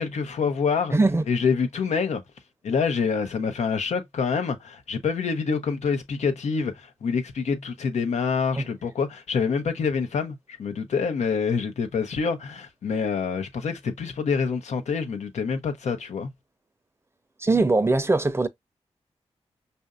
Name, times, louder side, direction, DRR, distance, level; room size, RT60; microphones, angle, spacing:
voice 1, 0.0-1.0 1.3-2.2 2.6-16.3, left 5 dB, 75° left, 0.8 m, -26 dB
voice 2, 0.9-1.2 8.6-8.7 17.4-18.5, right 2 dB, 20° right, 0.6 m, -21 dB
5.4 x 2.6 x 2.4 m
supercardioid pair, 40°, 12 cm